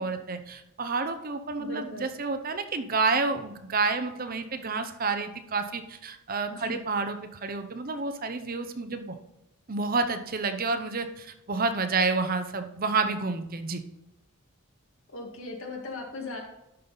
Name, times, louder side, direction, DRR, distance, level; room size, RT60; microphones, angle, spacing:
voice 1, 0.0-9.1 9.7-13.8, right 4 dB, 40° right, 8 dB, 0.7 m, -29 dB
voice 2, 1.6-2.1 6.5-6.8 15.1-16.4, left 2 dB, 60° left, 1 dB, 2.1 m, -38 dB
12.0 x 5.5 x 4.0 m, 0.84 s
head